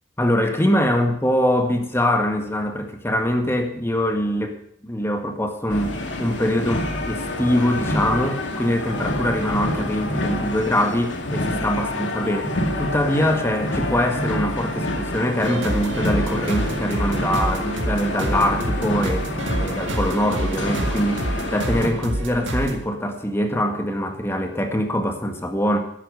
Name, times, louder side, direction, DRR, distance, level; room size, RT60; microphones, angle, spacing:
voice 1, 0.2-4.6 4.8-5.9 6.2-12.5 12.8-19.3 19.6-25.8, equal, 15° left, 5 dB, 1.7 m, -23 dB
sound 1, 5.7-21.9, left 1 dB, 80° left, 2.2 m, -28 dB
sound 2, 15.4-22.8, right 1 dB, 85° right, 1.9 m, -27 dB
12.5 x 10.0 x 6.9 m, 0.69 s
head